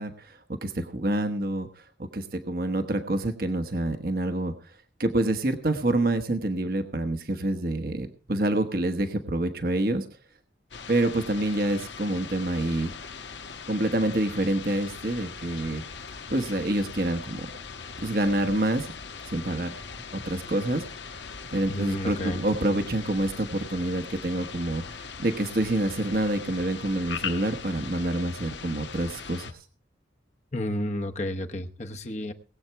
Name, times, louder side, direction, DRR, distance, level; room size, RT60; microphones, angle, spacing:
voice 1, 0.0-4.7 5.0-10.0 10.9-12.9 13.7-15.8 16.3-17.5 18.0-18.9 19.3-19.8 20.1-21.1 21.5-29.6, right 1 dB, 50° right, 7 dB, 1.1 m, -27 dB
sound 1, 10.7-29.5, left 5 dB, 80° left, 1.3 m, -40 dB
voice 2, 21.7-22.4 30.5-32.3, left 1 dB, 40° left, 5 dB, 1.0 m, -31 dB
19.5 x 8.0 x 4.6 m, 0.40 s
head